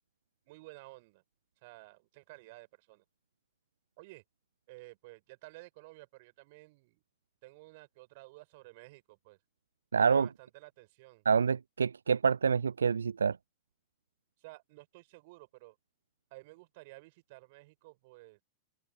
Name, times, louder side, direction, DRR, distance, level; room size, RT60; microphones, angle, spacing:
voice 1, 0.4-1.2 1.6-3.0 4.0-4.2 4.7-7.0 7.4-9.4 9.9-11.3 14.4-15.8 16.3-18.4, right 23 dB, 50° right, 6.4 m, -53 dB
voice 2, 9.9-10.3 11.3-13.4, right 6 dB, 70° right, 0.4 m, -27 dB
open air
figure-of-eight pair, 90°, 0 cm